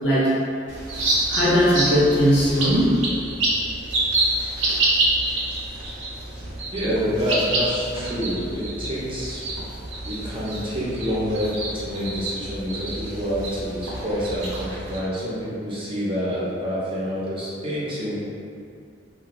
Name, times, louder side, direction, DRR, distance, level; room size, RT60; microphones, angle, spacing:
voice 1, 0.0-0.4 1.3-3.0, equal, 65° left, -8 dB, 0.8 m, -19 dB
sound 1, 0.7-15.0, right 2 dB, 80° right, 0.6 m, -27 dB
voice 2, 6.7-9.5 10.0-18.2, equal, 30° right, -8 dB, 0.6 m, -27 dB
2.5 x 2.3 x 3.0 m, 2.4 s
head